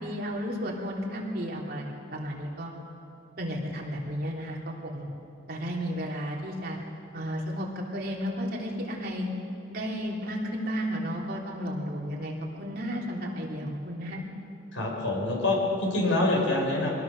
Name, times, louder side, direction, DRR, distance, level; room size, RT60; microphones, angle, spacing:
voice 1, 0.0-2.7 3.4-5.1 5.5-6.8 7.1-7.7 7.9-9.3 9.7-14.2, equal, 50° right, -2 dB, 3.3 m, -33 dB
voice 2, 14.7-16.9, left 2 dB, 80° left, 0 dB, 5.2 m, -26 dB
24.5 x 18.5 x 6.7 m, 2.7 s
head